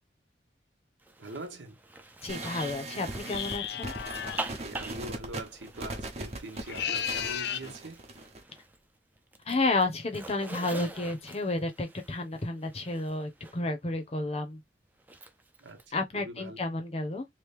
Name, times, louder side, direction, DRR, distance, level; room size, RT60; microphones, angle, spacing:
Zipper (clothing), 1.0-8.9 9.2-13.6 15.0-15.8, right 2 dB, 10° right, 0.5 m, -45 dB
voice 1, 1.2-1.8 4.6-8.0 15.6-16.6, right 1 dB, 80° right, 1.0 m, -43 dB
voice 2, 2.2-3.9 9.5-14.6 15.9-17.3, left 2 dB, 35° left, 0.8 m, -31 dB
sound 1, 2.3-8.4, right 2 dB, 35° right, 0.9 m, -39 dB
sound 2, 3.2-4.5 6.5-7.7, left 9 dB, 60° left, 0.4 m, -34 dB
3.1 x 2.6 x 3.4 m
head